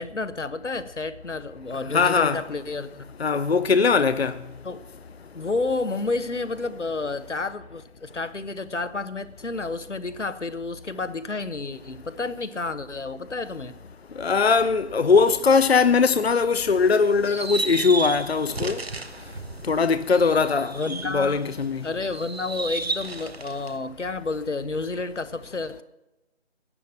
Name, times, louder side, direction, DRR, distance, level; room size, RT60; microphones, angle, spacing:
voice 1, 0.0-3.1 4.6-4.8 5.3-13.7 20.7-21.4 21.8-25.8, left 3 dB, 85° left, 1.1 m, -30 dB
voice 2, 1.9-2.4 3.2-4.3 14.2-18.8 19.7-21.8, left 5 dB, 60° left, 0.6 m, -20 dB
sound 1, 16.7-21.6 22.0-23.8, right 3 dB, 60° right, 1.3 m, -33 dB
12.0 x 8.6 x 6.8 m
figure-of-eight pair, 165°, 35 cm